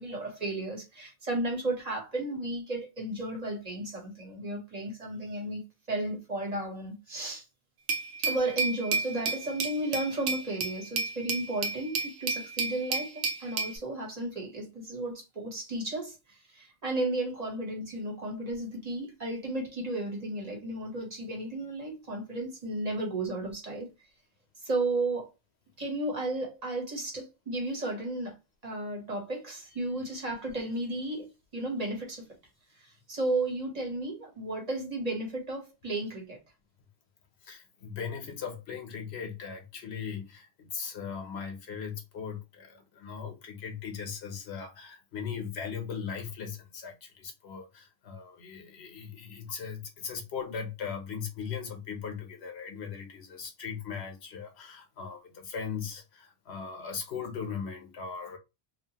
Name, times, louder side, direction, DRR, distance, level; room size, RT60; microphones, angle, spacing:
voice 1, 0.0-7.4 8.2-23.9 24.6-25.3 25.8-28.4 28.6-31.3 31.5-32.2 32.8-36.4, right 2 dB, 40° right, 1.0 m, -34 dB
Glass, 7.9-13.8, right 4 dB, 85° right, 0.9 m, -32 dB
voice 2, 37.4-58.4, left 6 dB, 85° left, 1.0 m, -39 dB
2.8 x 2.4 x 2.8 m
omnidirectional pair, 1.1 m